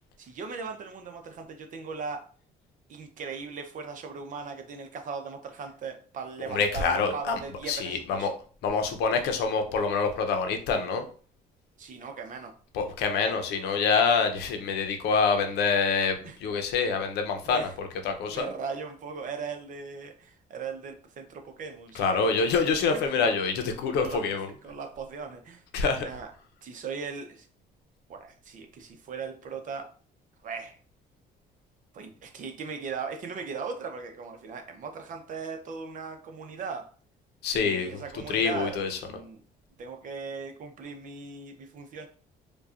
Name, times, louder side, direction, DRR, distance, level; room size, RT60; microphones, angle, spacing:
voice 1, 0.2-2.3 2.9-8.4 11.8-12.5 16.2-16.4 17.4-17.7 18.3-22.2 22.9-23.3 24.0-24.2 24.6-25.6 26.0-26.3 26.6-27.5 28.1-29.9 30.4-30.8 31.9-36.9 37.5-39.4 39.8-42.1, right 5 dB, 50° right, 5 dB, 0.7 m, -38 dB
voice 2, 6.5-7.4 7.7-8.3 8.6-11.1 12.7-18.5 21.9-24.5 25.7-26.1 37.4-39.0, left 5 dB, 80° left, 6 dB, 0.7 m, -26 dB
4.7 x 2.3 x 2.5 m, 0.41 s
cardioid pair, 110°, 17 cm